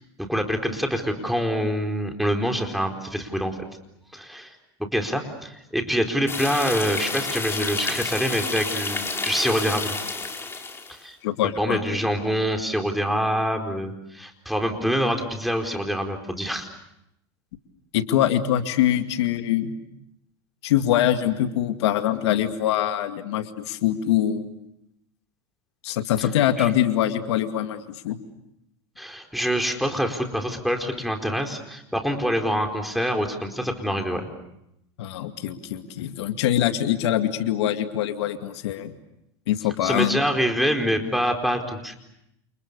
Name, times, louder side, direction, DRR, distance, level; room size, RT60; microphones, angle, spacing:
voice 1, 0.3-3.6 4.1-4.5 4.9-9.9 10.9-11.2 11.6-16.7 26.2-26.3 26.6-26.7 29.0-34.3 39.8-41.9, equal, ahead, 3 dB, 4.5 m, -25 dB
sound 1, 6.3-11.0, left 4 dB, 15° left, 4.7 m, -30 dB
voice 2, 11.2-12.0 17.9-19.7 20.6-24.5 25.8-28.2 35.0-38.9 39.5-40.2, left 11 dB, 80° left, 7 dB, 2.3 m, -23 dB
29.5 x 29.0 x 6.8 m, 0.82 s
supercardioid pair, 120°, 14 cm